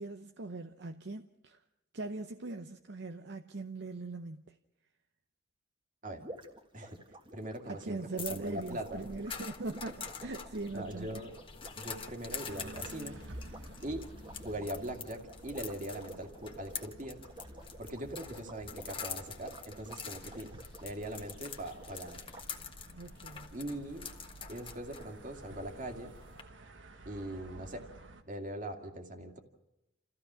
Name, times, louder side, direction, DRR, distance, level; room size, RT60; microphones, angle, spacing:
voice 1, 0.0-1.6 1.9-4.6 7.7-11.2 22.9-23.5, right 3 dB, 60° right, 0.8 m, -41 dB
sound 1, 6.2-22.5, right 1 dB, 25° right, 1.7 m, -53 dB
voice 2, 7.3-9.1 10.7-11.3 11.8-13.2 13.8-14.1 14.4-17.2 17.8-22.3 23.5-24.1 24.5-26.2 27.0-27.8 28.3-29.4, right 1 dB, 45° right, 2.3 m, -41 dB
sound 2, 8.2-26.4, left 6 dB, 30° left, 1.5 m, -46 dB
sound 3, 12.5-28.2, right 1 dB, 80° right, 1.5 m, -53 dB
30.0 x 14.5 x 6.2 m
head